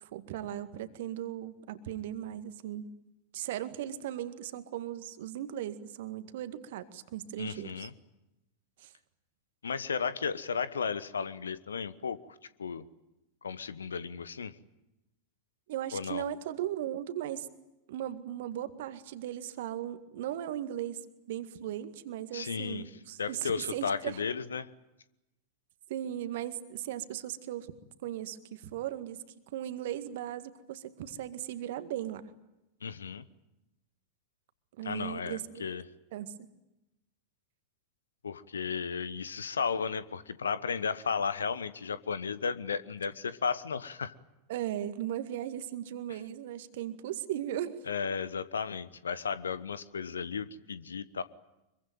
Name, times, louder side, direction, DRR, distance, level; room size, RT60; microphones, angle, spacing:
voice 1, 0.0-2.9 3.3-7.9 8.8-8.9 15.7-17.5 17.9-21.0 21.3-24.2 25.9-27.7 28.0-29.2 29.5-32.3 34.8-35.7 36.1-36.3 44.5-47.8, right 11 dB, 55° right, 10 dB, 1.9 m, -37 dB
voice 2, 7.4-7.9 9.6-12.2 12.6-12.8 13.4-14.6 15.9-16.2 22.3-22.9 23.2-24.7 32.8-33.2 34.8-35.8 38.2-44.1 47.9-51.2, left 6 dB, 70° left, 16 dB, 1.1 m, -34 dB
25.0 x 23.0 x 9.2 m, 0.95 s
figure-of-eight pair, 90°, 0 cm